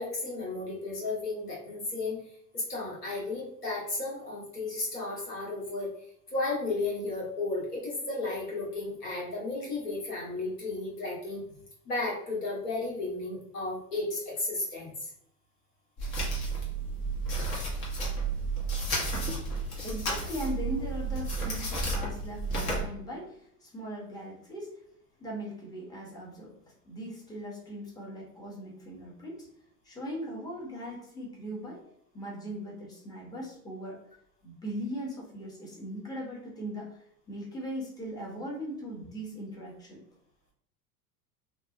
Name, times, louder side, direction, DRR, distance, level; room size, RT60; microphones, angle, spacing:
voice 1, 0.0-2.2 2.5-5.9 6.3-11.4 11.8-15.1, left 2 dB, 90° left, -5 dB, 1.4 m, -33 dB
sound 1, 16.0-22.8, right 2 dB, 45° left, 1.2 m, -32 dB
voice 2, 19.8-24.8 25.2-26.5 26.9-29.5 29.8-31.8 32.1-34.0 34.4-40.0, equal, 10° left, -4 dB, 0.9 m, -39 dB
2.8 x 2.4 x 2.5 m, 0.70 s
hypercardioid pair, 95°, 46 cm